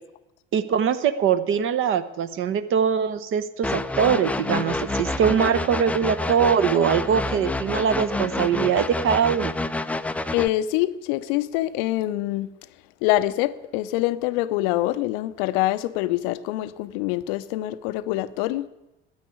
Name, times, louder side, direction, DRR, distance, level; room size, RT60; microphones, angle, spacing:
voice 1, 0.5-9.5, right 7 dB, 40° right, 0.9 m, -22 dB
sound 1, 3.6-10.5, left 2 dB, 5° left, 0.5 m, -28 dB
voice 2, 10.3-12.6 13.0-18.7, left 15 dB, 55° left, 0.6 m, -25 dB
9.6 x 9.3 x 9.8 m
figure-of-eight pair, 60°, 31 cm